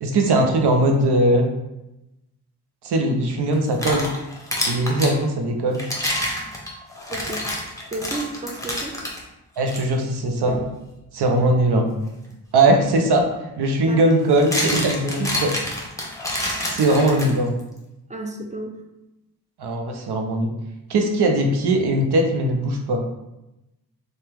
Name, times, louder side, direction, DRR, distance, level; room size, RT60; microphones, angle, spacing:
voice 1, 0.0-1.4 2.8-4.1 4.7-5.8 9.6-10.6 11.1-11.9 12.5-13.3 13.6-15.5 16.7-17.5 19.6-20.5 20.9-23.0, right 1 dB, 75° right, 3 dB, 0.6 m, -20 dB
sound 1, 3.5-5.2 5.7-9.2 9.7-9.8 10.5-10.7 12.8-12.9 14.1-17.6, left 1 dB, 10° left, 0.8 m, -27 dB
voice 2, 7.1-7.5 7.9-9.0 9.7-9.8 13.9-14.1 18.1-18.8, right 2 dB, 20° right, 3 dB, 0.4 m, -32 dB
2.8 x 2.1 x 3.4 m, 0.93 s
cardioid pair, 45°, 40 cm